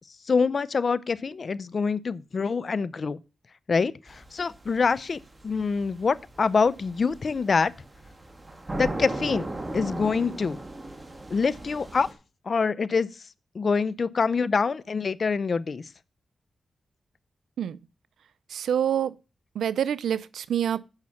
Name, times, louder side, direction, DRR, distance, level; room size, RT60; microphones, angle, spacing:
voice 1, 0.3-3.2 3.7-7.7 8.7-10.6 11.3-12.1 12.5-13.1 13.5-15.8, left 5 dB, 55° left, 0.6 m, -25 dB
sound 1, 4.1-12.1, right 1 dB, 25° right, 2.0 m, -37 dB
voice 2, 18.5-19.2 19.5-20.8, right 9 dB, 90° right, 0.4 m, -26 dB
9.0 x 5.7 x 5.7 m
cardioid pair, 55°, 0 cm